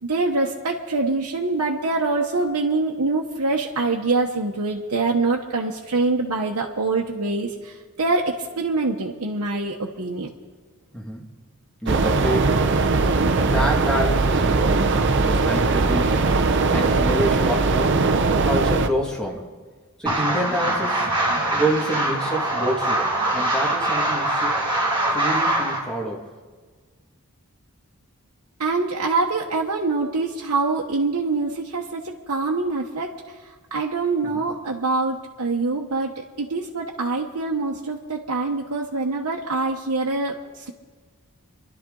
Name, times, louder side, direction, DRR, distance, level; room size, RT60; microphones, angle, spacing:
voice 1, 0.0-10.3 28.6-40.7, right 3 dB, 90° right, -1 dB, 1.1 m, -25 dB
voice 2, 10.9-11.3 11.8-12.6 13.0-18.1 18.4-19.5 20.0-21.1 21.5-24.5 25.1-26.3 34.3-34.4, right 1 dB, 5° left, -1 dB, 2.0 m, -28 dB
sound 1, 11.9-18.9, right 3 dB, 55° right, 0.7 m, -20 dB
sound 2, 20.1-25.8, right 1 dB, 20° right, 2.4 m, -23 dB
26.5 x 12.0 x 3.9 m, 1.4 s
head